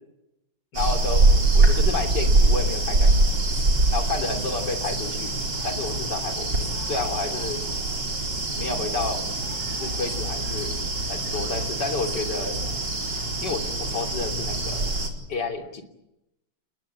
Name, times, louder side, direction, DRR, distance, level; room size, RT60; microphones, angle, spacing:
voice 1, 0.7-1.3 1.5-3.4 3.9-5.4 5.6-7.6 8.6-9.3 9.8-10.7 11.1-12.6 13.4-15.0 15.3-15.8, left 4 dB, 55° left, 4 dB, 3.7 m, -30 dB
sound 1, 0.7-15.1, right 2 dB, 55° right, 4.9 m, -24 dB
29.5 x 21.0 x 8.7 m, 0.86 s
omnidirectional pair, 2.3 m